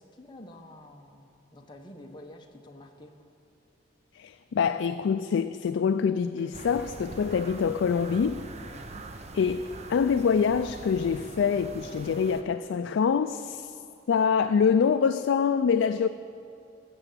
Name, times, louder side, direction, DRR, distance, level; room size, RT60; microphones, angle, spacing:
voice 1, 0.0-3.2 8.7-9.1, left 1 dB, 25° left, 0.9 m, -48 dB
voice 2, 4.1-8.4 9.3-13.8 14.1-16.1, left 6 dB, 70° left, 0.3 m, -25 dB
sound 1, 6.2-13.3 13.6-13.7 14.4-14.7, left 1 dB, 15° right, 2.5 m, -59 dB
sound 2, 6.5-12.4, right 2 dB, 35° right, 0.6 m, -43 dB
15.0 x 6.8 x 8.0 m
head